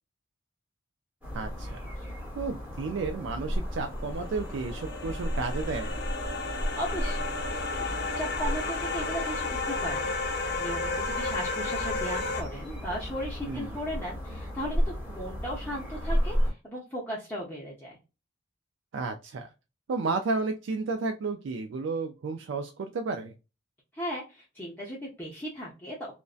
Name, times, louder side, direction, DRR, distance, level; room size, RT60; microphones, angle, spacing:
sound 1, 1.2-16.5, equal, 5° right, 1.0 m, -34 dB
voice 1, 1.3-1.8 2.4-5.9 13.5-13.7 18.9-19.5 19.9-23.3, right 4 dB, 70° right, 5 dB, 0.3 m, -32 dB
sound 2, 4.0-12.4, left 3 dB, 55° left, 0.5 m, -33 dB
voice 2, 6.8-18.0 23.9-26.1, equal, 10° left, -6 dB, 0.6 m, -37 dB
2.5 x 2.1 x 2.3 m, 0.28 s
head